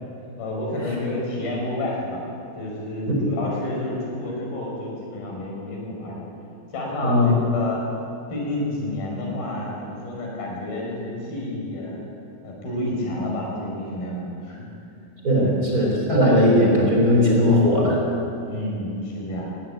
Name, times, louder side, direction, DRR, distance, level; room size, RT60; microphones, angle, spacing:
voice 1, 0.4-2.2 2.6-6.2 6.7-7.8 8.3-12.0 12.4-14.7 15.4-15.5 18.4-19.4, left 1 dB, 75° left, -2 dB, 7.1 m, -29 dB
voice 2, 15.2-18.0, left 1 dB, 25° right, -2 dB, 4.3 m, -18 dB
20.5 x 16.0 x 9.1 m, 2.7 s
omnidirectional pair, 4.4 m